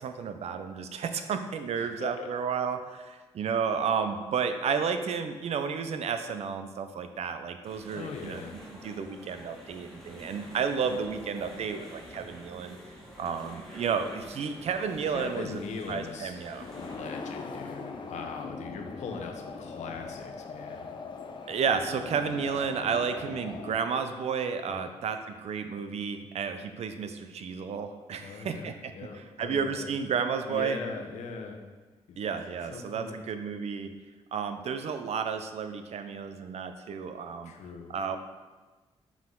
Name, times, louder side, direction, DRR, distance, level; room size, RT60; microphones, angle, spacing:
voice 1, 0.0-8.4 8.8-12.8 13.2-15.6 15.9-16.7 21.5-30.8 32.2-33.9 34.3-37.5 37.9-38.2, right 6 dB, 65° right, 8 dB, 0.5 m, -32 dB
voice 2, 1.7-2.3 7.9-8.6 15.1-16.3 16.8-20.8 24.7-24.9 28.2-29.9 30.5-31.7 32.1-32.2 32.7-33.2 37.4-37.9, left 5 dB, 85° left, 3 dB, 0.8 m, -40 dB
sound 1, 7.6-17.0, equal, 5° left, 1.4 m, -47 dB
sound 2, 16.5-23.8, left 4 dB, 45° left, 0.6 m, -41 dB
5.8 x 4.8 x 3.7 m, 1.3 s
cardioid pair, 120°, 12 cm